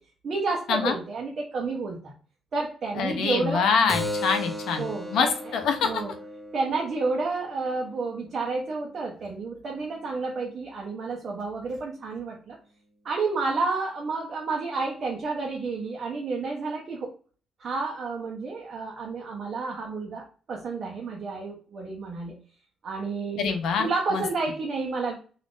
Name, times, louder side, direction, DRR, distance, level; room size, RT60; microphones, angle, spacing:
voice 1, 0.2-2.1 2.5-3.7 4.8-5.3 5.8-6.1 6.5-12.6 13.0-17.1 17.6-22.3 22.8-23.5 23.8-25.1, right 3 dB, 45° right, -1 dB, 0.6 m, -30 dB
voice 2, 3.0-4.9 5.1-5.3 5.5-5.9 23.4-24.2, left 6 dB, 75° left, 6 dB, 0.6 m, -25 dB
Keyboard (musical), 3.9-9.0, left 1 dB, ahead, 0.5 m, -37 dB
2.4 x 2.4 x 3.4 m, 0.40 s
cardioid pair, 140°, 0 cm